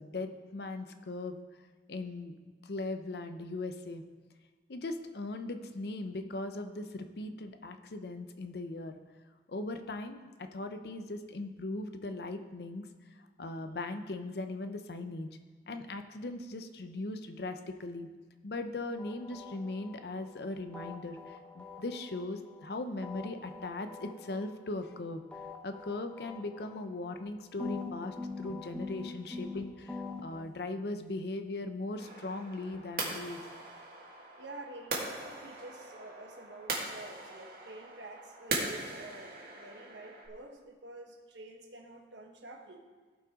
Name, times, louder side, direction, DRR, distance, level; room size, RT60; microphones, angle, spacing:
voice 1, 0.0-1.4 1.9-4.0 4.7-8.9 9.5-12.9 13.4-15.3 15.7-18.1 18.4-25.2 25.6-33.4, left 2 dB, 65° left, 8 dB, 0.6 m, -39 dB
sound 1, 19.0-20.4 20.7-22.7 23.0-25.0 25.3-27.3 27.6-30.4, left 3 dB, 5° left, 0.7 m, -44 dB
sound 2, 32.0-40.3, right 3 dB, 55° right, 1.8 m, -40 dB
voice 2, 34.4-42.9, right 2 dB, 90° right, 3 dB, 1.2 m, -48 dB
16.0 x 5.7 x 3.6 m, 1.4 s
head